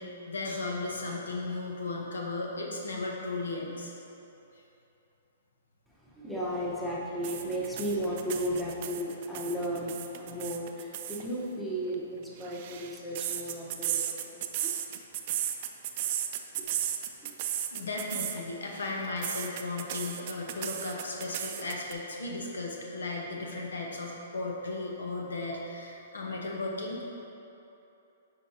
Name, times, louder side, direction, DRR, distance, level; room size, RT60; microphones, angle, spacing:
voice 1, 0.0-3.9 17.7-27.0, left 3 dB, 90° left, -1 dB, 1.0 m, -35 dB
voice 2, 6.0-14.7 16.0-16.1 16.6-16.7 17.2-17.4, equal, 5° left, -6 dB, 1.0 m, -35 dB
sound 1, 7.2-11.2 12.2-18.4 18.7-21.9, right 11 dB, 45° right, 0.4 m, -34 dB
8.4 x 4.8 x 2.8 m, 2.9 s
hypercardioid pair, 135°, 0 cm